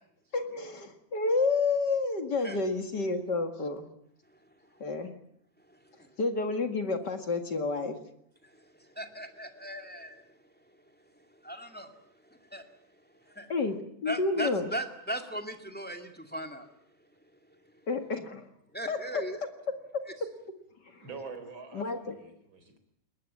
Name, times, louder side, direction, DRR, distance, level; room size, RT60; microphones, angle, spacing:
voice 1, 0.3-3.9 4.8-5.1 6.2-8.0 13.5-14.7 17.9-18.5 18.9-19.2 20.2-20.3 20.8-21.1 21.7-22.1, left 3 dB, 40° left, 7 dB, 2.1 m, -30 dB
voice 2, 5.7-6.1 8.4-10.3 11.4-11.9 12.3-12.7 13.3-13.5 14.0-16.7 18.7-19.4, right 1 dB, 5° left, 5 dB, 1.6 m, -38 dB
voice 3, 21.0-22.8, right 4 dB, 40° right, 8 dB, 4.6 m, -45 dB
21.0 x 20.0 x 8.5 m, 0.73 s
omnidirectional pair, 3.4 m